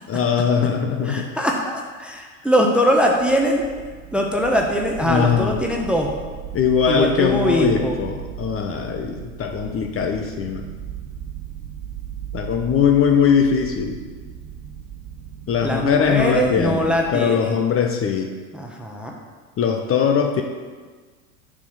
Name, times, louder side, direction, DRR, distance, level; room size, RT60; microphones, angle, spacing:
voice 1, 0.1-1.3 5.0-5.6 6.5-10.7 12.3-14.0 15.5-18.3 19.6-20.4, left 7 dB, 35° left, 4 dB, 0.8 m, -20 dB
voice 2, 1.0-3.6 4.1-6.1 6.9-8.0 15.6-17.6 18.5-19.1, equal, 5° right, 0 dB, 0.9 m, -21 dB
sound 1, 2.8-17.1, right 9 dB, 55° right, 1.7 m, -37 dB
7.3 x 4.3 x 6.5 m, 1.5 s
hypercardioid pair, 90°, 41 cm